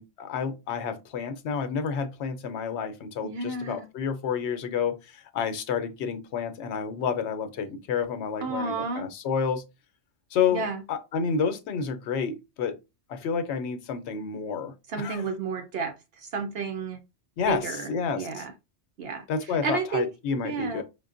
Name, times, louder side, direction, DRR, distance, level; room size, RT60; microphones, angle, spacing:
voice 1, 0.0-9.6 10.3-12.8 13.1-15.2 17.4-18.4 19.3-20.8, left 6 dB, 75° left, 0.9 m, -30 dB
voice 2, 3.2-3.9 8.4-9.1 10.5-10.8 14.9-17.0 17.5-18.5 19.0-20.1 20.4-20.8, right 4 dB, 65° right, 0.8 m, -32 dB
5.1 x 2.1 x 2.4 m
omnidirectional pair, 1.2 m